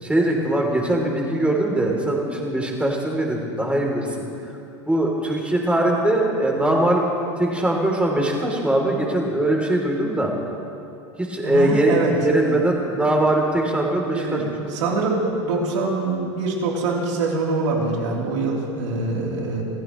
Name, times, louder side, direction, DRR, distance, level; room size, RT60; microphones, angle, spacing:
voice 1, 0.0-4.1 4.9-7.0 7.4-10.3 11.2-14.4, right 1 dB, 10° right, -1 dB, 3.3 m, -21 dB
voice 2, 11.4-12.6 14.1-19.6, right 3 dB, 80° right, -2 dB, 3.5 m, -24 dB
27.0 x 15.5 x 3.2 m, 2.7 s
hypercardioid pair, 110°, 15 cm